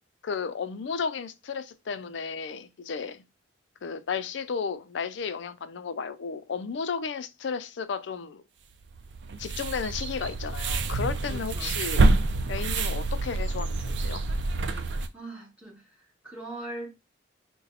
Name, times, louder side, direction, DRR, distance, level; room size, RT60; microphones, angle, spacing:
voice 1, 0.2-3.2 3.8-8.4 9.4-12.2 12.5-14.2, left 6 dB, 70° left, 0.4 m, -33 dB
sound 1, 8.9-15.1, right 3 dB, 70° right, 0.5 m, -27 dB
voice 2, 11.3-11.8 15.1-16.9, right 2 dB, 5° right, 1.6 m, -41 dB
4.0 x 2.2 x 4.0 m
head